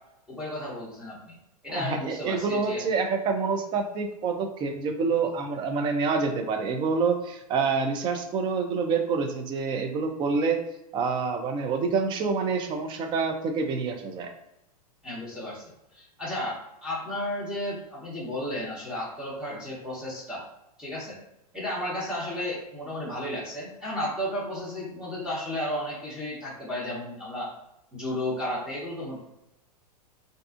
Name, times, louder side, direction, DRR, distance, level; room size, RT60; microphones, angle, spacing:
voice 1, 0.3-1.4 1.6-2.9 15.0-20.4 20.8-21.2 21.5-27.5 27.9-29.2, left 1 dB, 5° right, -8 dB, 1.0 m, -33 dB
voice 2, 1.7-10.6 10.9-14.3, right 4 dB, 25° right, 6 dB, 0.4 m, -27 dB
2.5 x 2.3 x 2.4 m, 0.86 s
hypercardioid pair, 105°, 20 cm